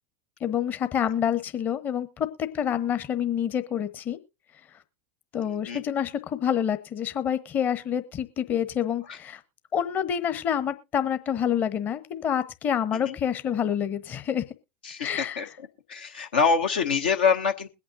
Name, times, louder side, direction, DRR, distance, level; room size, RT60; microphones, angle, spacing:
voice 1, 0.4-2.3 2.5-4.2 5.3-9.4 9.7-14.4 15.0-15.4, left 9 dB, 35° left, 11 dB, 1.1 m, -27 dB
voice 2, 5.5-5.8 9.1-9.2 12.9-13.2 14.8-17.7, left 6 dB, 70° left, 4 dB, 1.0 m, -26 dB
21.5 x 8.7 x 2.7 m, 0.26 s
figure-of-eight pair, 85°, 6 cm